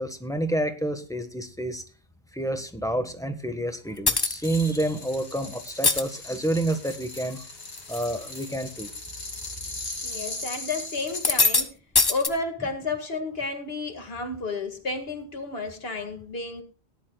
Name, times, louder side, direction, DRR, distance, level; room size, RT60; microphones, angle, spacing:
voice 1, 0.0-1.8 2.3-7.4 7.9-8.9, right 1 dB, 5° left, 7 dB, 1.3 m, -29 dB
sound 1, 4.1-4.4 5.7-6.0 6.7-7.2 7.6-8.1 8.4-8.5 9.3-9.5 11.1-11.6 12.0-12.3, left 3 dB, 25° left, 0.8 m, -22 dB
sound 2, 4.4-11.4, left 3 dB, 85° left, 2.7 m, -38 dB
voice 2, 10.0-11.8 12.1-16.6, left 3 dB, 65° left, 5 dB, 2.1 m, -31 dB
18.0 x 11.0 x 2.3 m, 0.36 s
omnidirectional pair, 1.1 m